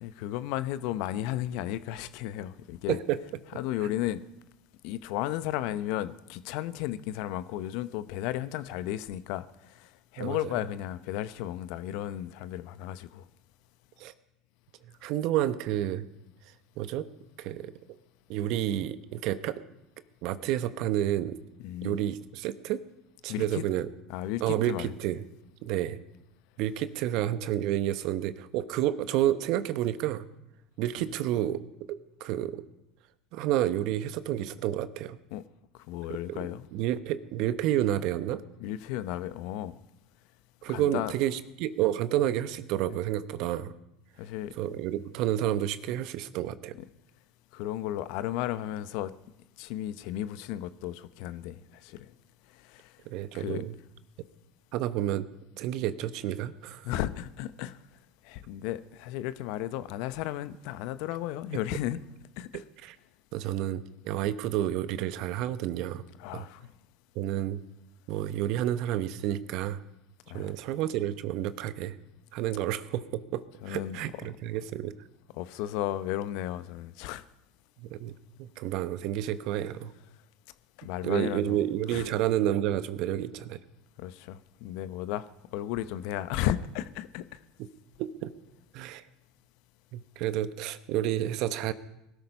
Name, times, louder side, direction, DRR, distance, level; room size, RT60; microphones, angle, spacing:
voice 1, 0.0-3.0 3.5-4.2 4.8-13.2 21.6-22.0 23.3-23.6 24.1-24.9 35.3-35.4 35.9-36.7 38.6-39.8 40.7-41.1 42.9-43.0 44.2-44.5 47.5-49.1 49.6-52.1 52.6-52.9 53.3-53.6 56.8-57.8 58.2-62.0 62.4-62.6 66.2-66.7 70.3-70.5 73.6-74.0 75.4-77.2 80.8-81.6 81.9-82.1 84.0-85.3 85.5-87.4, left 13 dB, 65° left, 0.7 m, -34 dB
voice 2, 2.9-3.2 3.5-3.6 10.2-10.4 14.0-14.1 15.0-16.0 16.8-17.1 17.4-17.7 18.3-19.6 20.2-21.4 21.8-22.8 23.2-23.9 24.4-25.2 25.6-26.0 26.6-30.3 30.8-31.6 31.9-32.6 33.3-35.2 36.3-36.4 36.7-38.4 40.6-43.7 44.6-46.7 53.1-53.7 54.7-55.3 55.6-56.9 62.5-63.0 63.3-66.0 66.3-66.5 67.1-67.6 68.1-69.8 70.3-72.0 72.3-74.9 77.8-78.1 78.4-79.9 81.0-83.6 87.6-87.7 88.0-88.3 88.7-89.0 89.9-91.7, right 12 dB, 60° right, 1.0 m, -30 dB
20.0 x 13.0 x 5.4 m
hypercardioid pair, 75°, 0 cm